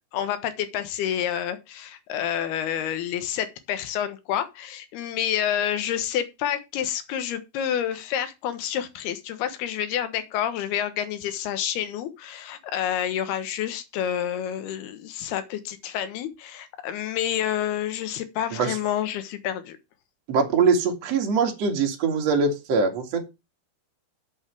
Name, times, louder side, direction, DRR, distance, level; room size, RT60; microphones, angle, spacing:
voice 1, 0.1-19.8, left 10 dB, 80° left, 3.2 m, -29 dB
voice 2, 20.3-23.2, right 5 dB, 45° right, 3.0 m, -22 dB
8.3 x 6.1 x 7.6 m
omnidirectional pair, 4.5 m